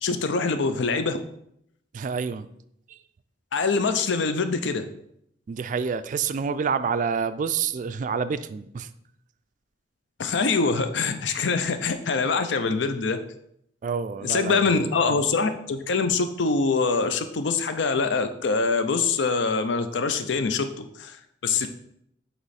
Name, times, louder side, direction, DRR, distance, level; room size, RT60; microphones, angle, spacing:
voice 1, 0.0-1.2 3.5-4.9 10.2-13.2 14.2-21.2 21.4-21.7, left 4 dB, 75° left, 9 dB, 0.5 m, -24 dB
voice 2, 1.9-2.5 2.9-3.0 5.5-8.9 13.8-15.2, right 6 dB, 45° right, 13 dB, 0.3 m, -28 dB
7.9 x 3.1 x 4.2 m, 0.74 s
head